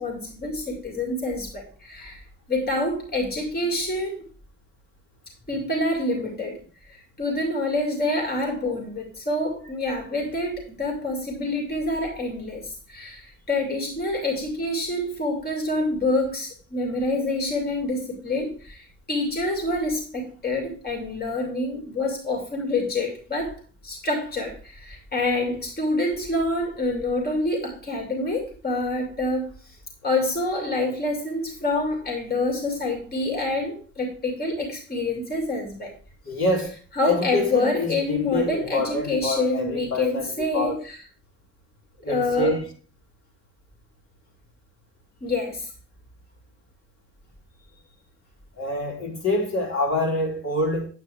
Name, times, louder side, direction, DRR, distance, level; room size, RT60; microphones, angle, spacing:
voice 1, 0.0-4.2 5.5-6.6 6.9-23.5 23.8-29.5 30.0-35.9 37.0-41.0 42.1-42.5 45.2-45.7, left 2 dB, 30° left, 2.6 m, -27 dB
voice 2, 36.3-36.8 37.0-40.8 42.0-42.7 48.6-50.9, left 1 dB, 60° left, 3.5 m, -26 dB
8.9 x 8.4 x 3.5 m
cardioid pair, 90°, 30 cm